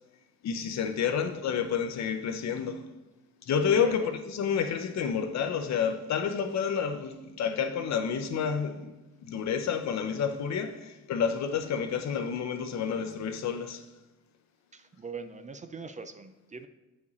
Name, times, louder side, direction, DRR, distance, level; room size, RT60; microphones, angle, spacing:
voice 1, 0.4-2.9 3.4-8.9 9.2-13.8, left 7 dB, 65° left, 0.8 m, -29 dB
voice 2, 14.7-16.7, right 3 dB, 25° right, 0.5 m, -41 dB
8.3 x 5.0 x 4.1 m
cardioid pair, 90°, 30 cm